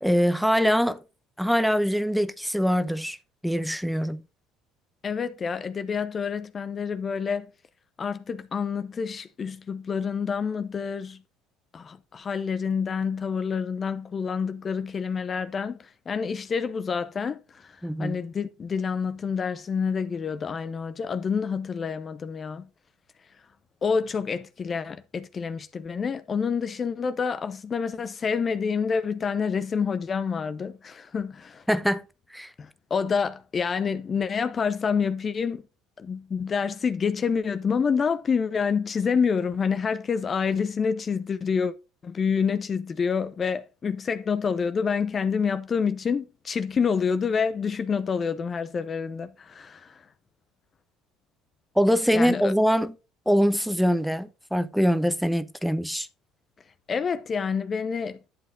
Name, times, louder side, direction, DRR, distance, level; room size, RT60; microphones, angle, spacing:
voice 1, 0.0-1.0 1.4-3.2 3.4-4.2 17.8-18.2 31.7-32.0 32.3-32.5 51.8-52.9 53.3-56.1, equal, ahead, 0.8 m, -23 dB
voice 2, 5.0-7.5 8.0-11.2 11.7-22.7 23.8-31.6 32.6-35.6 36.0-41.7 42.0-50.0 52.1-52.5 56.9-58.3, left 6 dB, 35° left, 0.8 m, -28 dB
11.5 x 7.7 x 2.6 m
hypercardioid pair, 70°, 0 cm